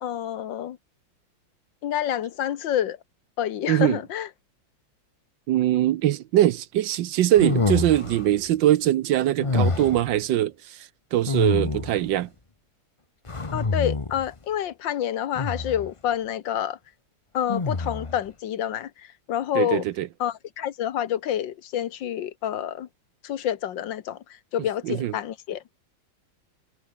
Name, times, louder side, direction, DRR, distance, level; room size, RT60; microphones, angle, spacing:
voice 1, 0.0-0.8 1.8-3.0 3.4-4.3 13.5-16.8 17.3-19.8 20.2-22.9 23.2-25.6, left 10 dB, 70° left, 1.6 m, -28 dB
voice 2, 3.7-4.0 5.5-12.3 19.5-20.1 24.8-25.1, right 13 dB, 70° right, 1.3 m, -22 dB
sound 1, 7.3-8.3 9.4-10.1 11.3-12.1 13.3-14.3 15.3-15.9 17.5-18.2, left 3 dB, 20° left, 0.8 m, -26 dB
omnidirectional pair, 2.2 m